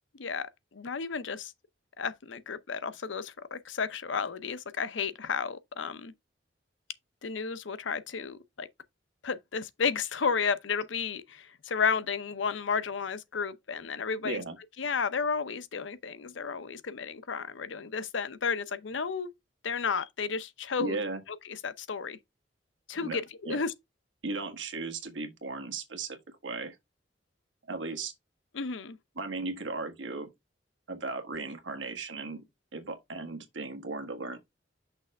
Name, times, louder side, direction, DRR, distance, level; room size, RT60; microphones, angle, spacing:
voice 1, 0.2-1.5 2.0-6.1 7.2-8.7 9.2-14.4 14.8-19.3 19.6-21.0 21.4-22.2 22.9-23.7 28.5-29.0, left 5 dB, 80° left, 0.7 m, -32 dB
voice 2, 14.2-14.6 20.8-21.2 23.0-23.2 23.4-23.6 24.2-26.8 27.7-28.1 29.1-30.3 30.9-32.4 32.7-34.4, right 3 dB, 80° right, 1.5 m, -36 dB
6.1 x 3.3 x 5.2 m
head